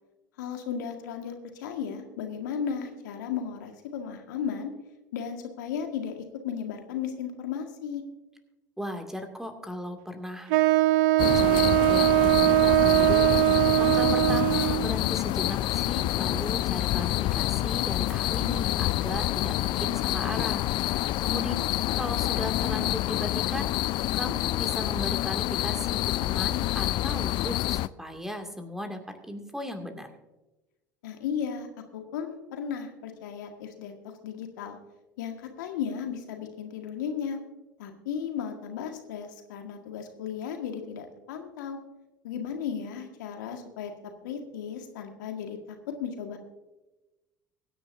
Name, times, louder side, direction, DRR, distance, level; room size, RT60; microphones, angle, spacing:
voice 1, 0.4-4.7 5.1-8.0 13.8-14.2 21.2-21.5 31.0-31.7 31.9-33.9 34.2-34.8 35.2-37.4 37.8-41.8 42.2-43.9 44.2-46.4, left 7 dB, 70° left, 4 dB, 1.8 m, -35 dB
voice 2, 8.8-10.6 11.2-13.3 13.8-21.5 21.9-29.0 29.3-30.1, left 1 dB, 5° right, 5 dB, 2.4 m, -37 dB
Wind instrument woodwind instrument, 10.5-14.9, right 17 dB, 65° right, 0.5 m, -21 dB
sound 1, 11.2-27.9, left 16 dB, 50° left, 0.4 m, -27 dB
23.0 x 9.9 x 2.7 m, 1.1 s
hypercardioid pair, 70°, 10 cm